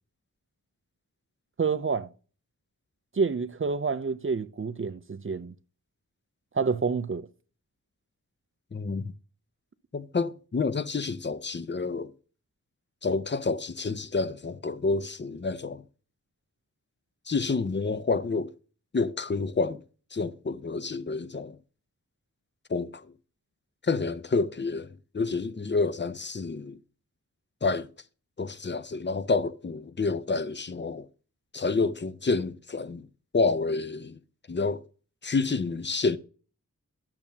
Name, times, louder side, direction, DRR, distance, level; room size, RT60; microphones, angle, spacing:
voice 1, 1.6-2.1 3.1-5.5 6.5-7.3, right 5 dB, 40° right, 0.5 m, -28 dB
voice 2, 8.7-9.1 9.9-12.1 13.0-15.8 17.3-18.5 18.9-19.8 20.1-21.6 22.7-23.1 23.8-26.8 27.6-27.9 28.4-31.1 31.5-33.1 33.3-34.2 34.5-34.8 35.2-36.2, left 4 dB, 35° left, 0.6 m, -29 dB
10.5 x 7.0 x 2.8 m
wide cardioid pair, 75°, 33 cm